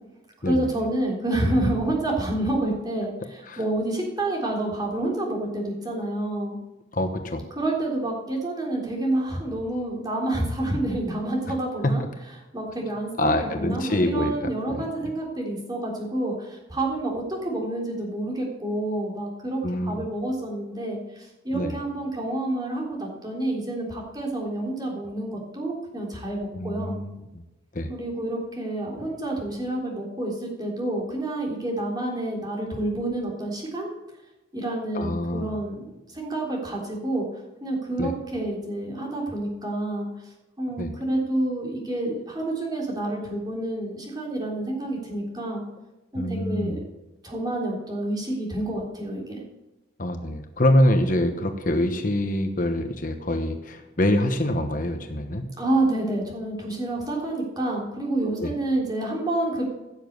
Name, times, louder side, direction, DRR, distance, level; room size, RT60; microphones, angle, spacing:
voice 1, 0.4-6.6 7.6-12.0 12.5-13.3 13.6-27.0 27.9-33.9 34.5-37.3 37.6-40.1 40.6-45.6 46.1-46.9 47.2-49.4 55.6-59.7, right 1 dB, 20° right, -2 dB, 3.5 m, -28 dB
voice 2, 6.9-7.4 11.8-11.9 13.2-15.1 19.6-20.0 21.5-21.8 26.5-27.4 27.7-27.9 34.9-35.6 38.0-38.1 40.8-40.9 46.1-46.8 50.0-55.5 58.4-58.5, left 1 dB, 45° left, 6 dB, 1.1 m, -25 dB
16.0 x 7.3 x 8.1 m, 1.0 s
head